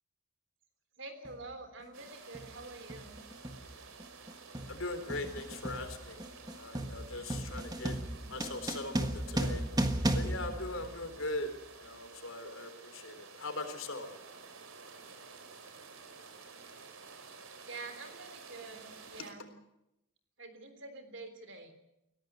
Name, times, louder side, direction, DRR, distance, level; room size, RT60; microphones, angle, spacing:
voice 1, 1.0-3.2 17.7-19.5 20.4-21.7, right 3 dB, 55° right, 9 dB, 3.4 m, -47 dB
sound 1, 1.2-1.4 2.3-2.6 2.9-11.4, right 1 dB, 20° right, 1.4 m, -36 dB
sound 2, 1.9-19.3, right 5 dB, 75° right, 3.2 m, -52 dB
voice 2, 4.7-7.9 8.3-9.6 10.1-11.5 11.8-14.1 19.2-19.3, left 2 dB, 70° left, 7 dB, 3.9 m, -40 dB
22.5 x 17.5 x 8.2 m, 0.85 s
head